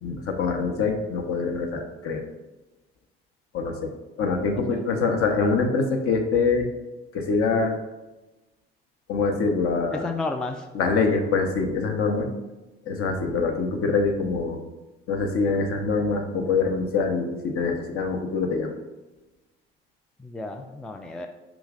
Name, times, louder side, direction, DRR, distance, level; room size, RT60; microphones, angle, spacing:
voice 1, 0.0-2.2 3.5-3.9 4.2-6.7 7.1-7.7 9.1-10.1 10.7-12.3 12.9-14.6 15.1-18.8, left 4 dB, 50° left, 3 dB, 0.8 m, -24 dB
voice 2, 9.9-10.7 20.2-21.3, left 3 dB, 5° left, 4 dB, 0.3 m, -32 dB
4.9 x 3.0 x 3.6 m, 1.1 s
hypercardioid pair, 55°, 29 cm